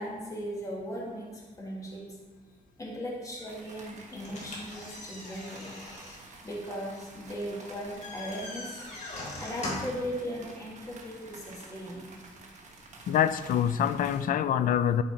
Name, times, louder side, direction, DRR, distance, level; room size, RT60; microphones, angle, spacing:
voice 1, 0.0-2.2 2.8-5.8 6.4-8.9 9.4-12.2, equal, 20° left, 1.9 m, -38 dB
sound 1, 3.5-14.3, right 3 dB, 50° right, 1.4 m, -50 dB
sound 2, 4.2-10.1, left 2 dB, 50° left, 2.2 m, -41 dB
voice 2, 13.1-15.0, left 9 dB, 65° left, 0.5 m, -25 dB
11.5 x 5.0 x 4.5 m
cardioid pair, 150°, 15 cm